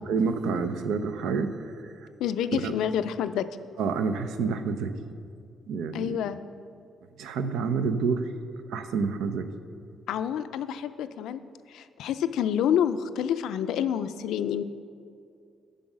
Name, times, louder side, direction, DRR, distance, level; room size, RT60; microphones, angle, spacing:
voice 1, 0.1-1.7 2.5-2.7 3.8-5.0 5.7-6.2 7.2-8.3 8.7-9.5, right 5 dB, 85° right, 9 dB, 0.5 m, -28 dB
voice 2, 2.2-3.5 5.9-6.4 10.1-11.4 11.7-14.7, left 9 dB, 80° left, 12 dB, 0.3 m, -28 dB
7.1 x 5.4 x 7.3 m, 2.4 s
cardioid pair, 90°, 0 cm